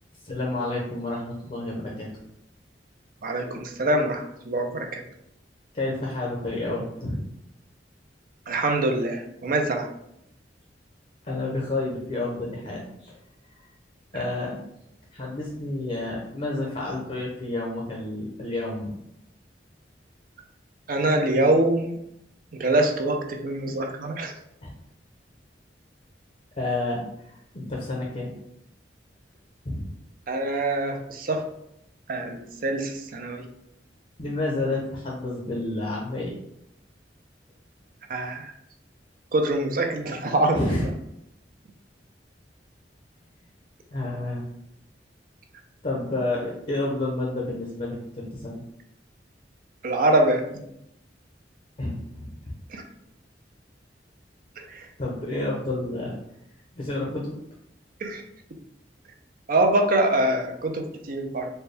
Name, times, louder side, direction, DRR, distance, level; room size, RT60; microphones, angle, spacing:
voice 1, 0.2-2.1 5.7-7.2 11.2-13.1 14.1-14.6 15.1-18.9 24.6-24.7 26.6-27.0 27.3-28.3 29.6-29.9 34.2-36.3 40.5-40.9 43.9-44.4 45.8-48.6 51.8-52.5 55.0-56.1 56.8-57.3, left 2 dB, 40° left, -2 dB, 0.8 m, -30 dB
voice 2, 3.2-5.0 8.5-9.9 20.9-22.0 22.6-24.3 30.3-31.4 32.1-33.4 38.1-38.5 39.3-40.8 49.8-50.4 52.7-52.8 54.6-54.8 58.0-58.2 59.5-61.5, right 1 dB, 55° right, 4 dB, 0.5 m, -24 dB
4.2 x 2.2 x 3.3 m, 0.77 s
head